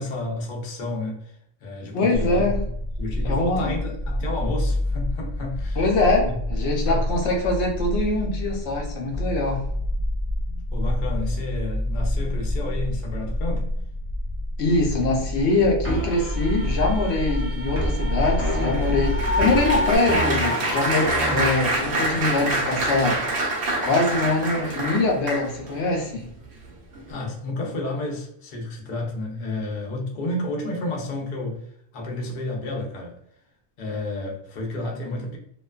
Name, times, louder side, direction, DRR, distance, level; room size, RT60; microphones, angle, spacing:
voice 1, 0.0-1.3 1.6-2.7 3.0-5.9 6.3-6.4 6.8-7.0 10.7-13.7 22.1-22.2 27.1-31.7 31.9-33.2 33.8-35.4, left 2 dB, 55° left, -1 dB, 0.8 m, -31 dB
voice 2, 1.9-2.6 3.2-3.7 5.8-9.6 14.6-23.2 23.8-26.3, left 2 dB, 85° left, 1 dB, 0.9 m, -23 dB
sound 1, 2.2-20.0, left 1 dB, 50° right, 0.6 m, -27 dB
sound 2, 15.8-21.6, left 1 dB, 15° right, 0.6 m, -28 dB
Applause, 17.5-25.8 26.4-26.7 26.9-27.1, right 2 dB, 75° right, 0.9 m, -27 dB
2.5 x 2.2 x 2.3 m, 0.68 s
omnidirectional pair, 1.1 m